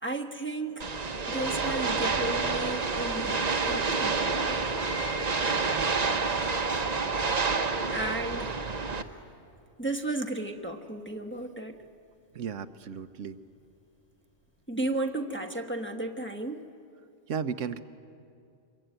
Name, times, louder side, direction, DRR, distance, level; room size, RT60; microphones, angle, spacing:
voice 1, 0.0-0.9 1.3-4.6 7.9-8.5 9.8-11.8 14.7-16.6, right 2 dB, 10° left, 1 dB, 1.2 m, -34 dB
sound 1, 0.8-9.0, right 4 dB, 35° right, 1.0 m, -28 dB
Piano, 4.6-15.0, equal, 60° left, 7.5 m, -48 dB
voice 2, 12.3-13.4 17.3-17.8, right 6 dB, 90° right, 10 dB, 1.2 m, -34 dB
26.5 x 22.5 x 9.1 m, 2.5 s
omnidirectional pair, 1.2 m